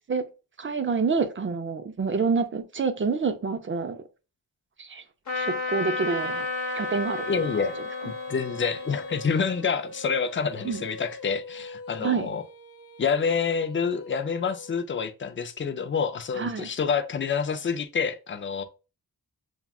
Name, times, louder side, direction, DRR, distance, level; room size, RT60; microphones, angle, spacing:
voice 1, 0.6-4.0 4.8-5.0 5.3-6.5 6.7-7.5 10.6-10.9 12.0-12.3 16.4-16.7, right 5 dB, 30° right, 0.5 m, -27 dB
Trumpet, 5.3-10.8, left 3 dB, 50° left, 1.2 m, -33 dB
Female singing, 6.0-14.8, left 2 dB, 70° left, 1.0 m, -42 dB
voice 2, 7.3-7.8 8.0-12.4 13.0-18.6, left 6 dB, 30° left, 0.5 m, -28 dB
7.0 x 2.3 x 2.3 m
wide cardioid pair, 105°, 37 cm